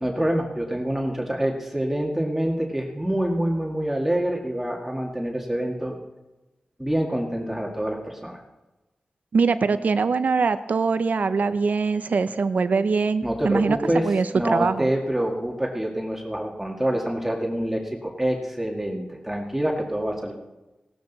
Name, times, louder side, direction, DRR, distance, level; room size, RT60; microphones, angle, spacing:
voice 1, 0.0-6.0 6.8-8.4 13.2-14.1 14.3-20.3, right 1 dB, 10° right, 0 dB, 1.9 m, -26 dB
voice 2, 9.3-13.8 14.0-14.9, right 4 dB, 70° right, 12 dB, 0.8 m, -22 dB
16.5 x 13.5 x 4.1 m, 1.1 s
wide cardioid pair, 75°, 3 cm